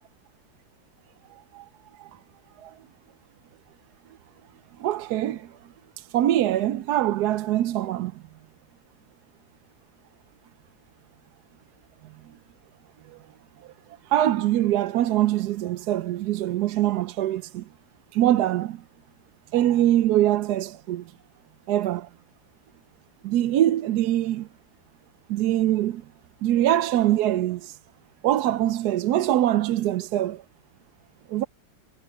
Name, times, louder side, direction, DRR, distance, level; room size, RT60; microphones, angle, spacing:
voice 1, 4.8-5.5 6.0-8.1 14.1-17.6 18.1-18.8 19.5-21.0 21.7-22.1 23.2-24.5 25.3-26.0 26.4-27.8 28.2-30.4 31.3-31.4, right 13 dB, 75° right, 1.1 m, -23 dB
omnidirectional pair, 1.8 m